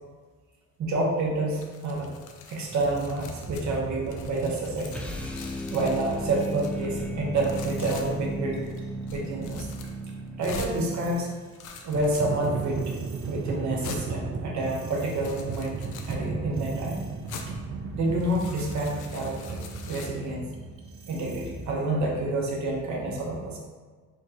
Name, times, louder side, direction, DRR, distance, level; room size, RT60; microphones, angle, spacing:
voice 1, 0.8-2.2 2.5-5.0 5.7-8.7 9.1-9.7 10.4-11.3 11.8-12.9 13.3-17.0 17.9-20.5 21.1-23.6, right 2 dB, 65° right, -2 dB, 0.9 m, -28 dB
sound 1, 1.5-3.8 4.1-6.9 7.4-8.1 8.6-8.8 9.1-10.0 10.4-10.7 11.4-12.7 13.3-13.4 13.8-14.0 14.8-16.2 17.3-17.5 18.1-20.1, left 6 dB, 85° left, 0.5 m, -44 dB
sound 2, 2.8-7.1 7.5-8.1 8.5-8.9 9.4-11.3 11.8-22.6, right 4 dB, 45° right, 0.5 m, -37 dB
sound 3, 4.9-11.4, equal, 5° left, 0.3 m, -35 dB
4.4 x 2.4 x 2.8 m, 1.4 s
cardioid pair, 90°, 30 cm